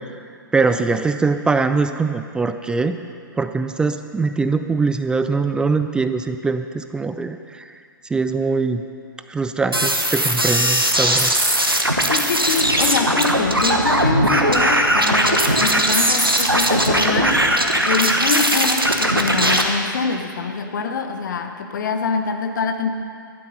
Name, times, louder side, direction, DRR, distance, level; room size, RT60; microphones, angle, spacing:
voice 1, 0.5-3.0 3.4-7.7 8.1-8.8 9.3-11.3, right 4 dB, 5° right, 9 dB, 0.4 m, -22 dB
sound 1, 9.7-19.6, right 1 dB, 90° right, 1.2 m, -18 dB
voice 2, 12.1-17.4 17.9-22.9, left 5 dB, 55° left, 6 dB, 1.2 m, -24 dB
12.0 x 11.5 x 5.6 m, 2.3 s
figure-of-eight pair, 110°, 12 cm